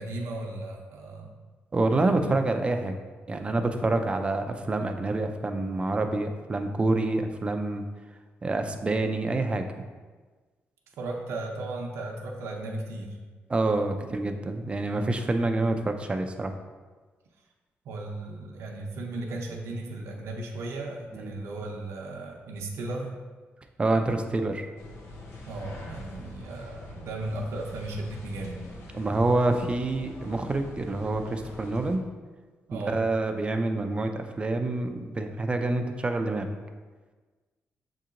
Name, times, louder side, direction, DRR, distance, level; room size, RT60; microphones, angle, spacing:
voice 1, 0.0-1.3 2.0-2.3 11.0-13.2 17.8-23.1 25.5-28.6 32.7-33.0, right 2 dB, 85° right, 0 dB, 0.6 m, -36 dB
voice 2, 1.7-2.9 3.3-7.8 8.4-9.7 13.5-16.5 21.1-21.3 23.8-24.7 28.9-32.0 32.7-36.5, right 2 dB, 25° right, 6 dB, 0.3 m, -27 dB
sound 1, 24.8-32.0, left 1 dB, 85° left, 0.7 m, -44 dB
7.1 x 2.8 x 2.5 m, 1.4 s
cardioid pair, 125°, 5 cm